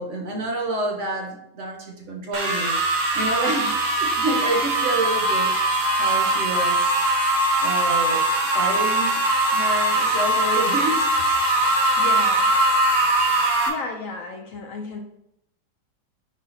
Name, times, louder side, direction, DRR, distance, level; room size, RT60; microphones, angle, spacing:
voice 1, 0.0-2.8 3.1-5.6 6.0-6.9 7.6-8.2 8.5-9.2 9.5-11.1, right 2 dB, 50° right, 1 dB, 1.1 m, -28 dB
sound 1, 2.3-13.7, right 1 dB, 30° right, 1.0 m, -21 dB
voice 2, 12.0-12.5 13.3-15.0, left 4 dB, 65° left, 2 dB, 0.9 m, -34 dB
5.5 x 4.8 x 4.1 m, 0.79 s
omnidirectional pair, 1.9 m